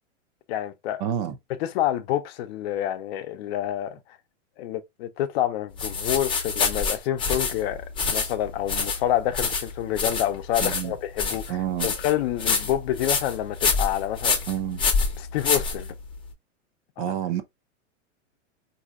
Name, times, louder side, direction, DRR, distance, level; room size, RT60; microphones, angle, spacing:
voice 1, 0.5-1.0 1.6-4.0 4.6-7.8 8.1-11.6 11.8-14.4 15.2-15.9, left 12 dB, 50° left, 0.6 m, -27 dB
voice 2, 1.0-1.3 10.6-10.9 11.5-11.9 14.5-14.8 17.0-17.4, right 10 dB, 40° right, 0.5 m, -28 dB
sound 1, 5.8-16.3, left 4 dB, 15° left, 0.7 m, -27 dB
4.0 x 2.7 x 2.4 m
supercardioid pair, 135°, 38 cm